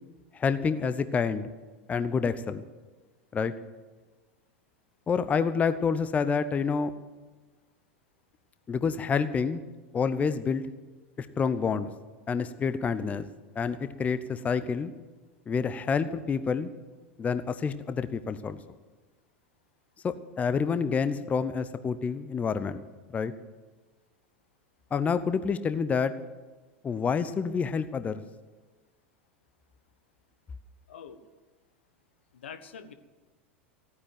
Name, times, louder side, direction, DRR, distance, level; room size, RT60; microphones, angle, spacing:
voice 1, 0.3-1.5 1.9-2.6 3.3-3.5 5.1-6.9 8.7-9.6 9.9-10.7 11.2-11.9 12.3-13.3 13.6-14.9 15.5-16.7 17.2-18.6 20.0-22.8 23.1-23.3 24.9-26.1 26.8-28.2, left 5 dB, 20° left, 12 dB, 0.8 m, -28 dB
voice 2, 30.9-31.2 32.3-32.9, left 7 dB, 75° left, 10 dB, 1.2 m, -44 dB
15.0 x 9.7 x 9.1 m, 1.3 s
figure-of-eight pair, 85°, 6 cm